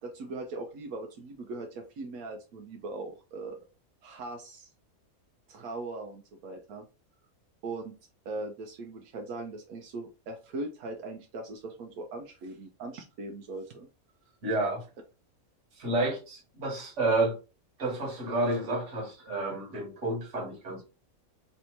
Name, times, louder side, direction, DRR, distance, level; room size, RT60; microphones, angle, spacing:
voice 1, 0.0-3.6 4.0-4.7 5.5-6.8 7.6-7.9 8.2-13.9, right 2 dB, 85° right, 1.1 m, -40 dB
voice 2, 14.4-14.8 15.8-17.4 17.8-20.8, right 2 dB, 55° right, 1.6 m, -30 dB
3.3 x 2.7 x 4.4 m
omnidirectional pair, 1.5 m